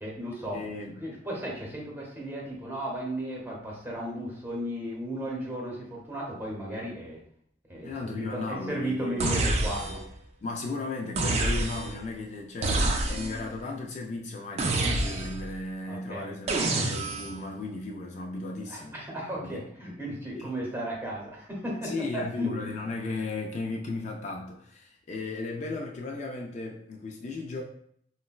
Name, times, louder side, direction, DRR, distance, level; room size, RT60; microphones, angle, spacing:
voice 1, 0.0-0.7 1.0-7.2 7.7-10.0 15.9-16.4 18.7-22.5, equal, 10° right, -3 dB, 0.8 m, -35 dB
voice 2, 0.5-1.0 7.8-9.3 10.4-18.9 19.4-19.6 20.3-20.5 21.8-27.6, left 3 dB, 40° left, 0 dB, 0.3 m, -35 dB
sound 1, 9.2-10.1 11.2-12.0 12.6-13.5 14.6-15.5 16.5-17.4, right 2 dB, 35° right, 0.3 m, -27 dB
3.9 x 2.1 x 2.3 m, 0.66 s
head